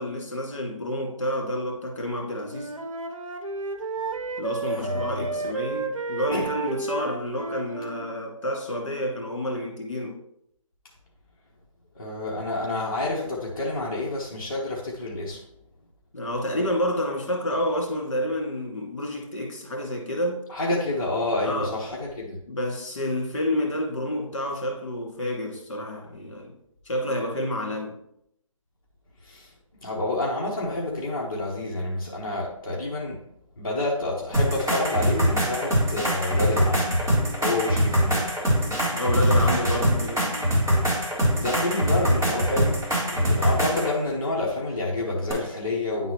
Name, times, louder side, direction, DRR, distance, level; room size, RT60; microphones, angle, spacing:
voice 1, 0.0-2.7 4.4-10.2 16.1-20.4 21.5-21.7 22.5-26.5 26.9-28.0 38.9-40.5 40.9-41.0, left 1 dB, 60° left, 2.1 m, -29 dB
Wind instrument woodwind instrument, 2.5-8.1, right 3 dB, 70° right, 0.9 m, -32 dB
voice 2, 4.7-5.5 6.3-6.5 11.9-15.4 20.5-22.4 29.2-29.5 29.8-33.2 33.6-36.9 37.4-38.3 41.4-46.1, left 2 dB, 40° left, 1.1 m, -28 dB
sound 1, 34.3-43.9 45.3-45.4, equal, 5° right, 2.0 m, -23 dB
9.8 x 3.9 x 3.1 m
hypercardioid pair, 180°, 18 cm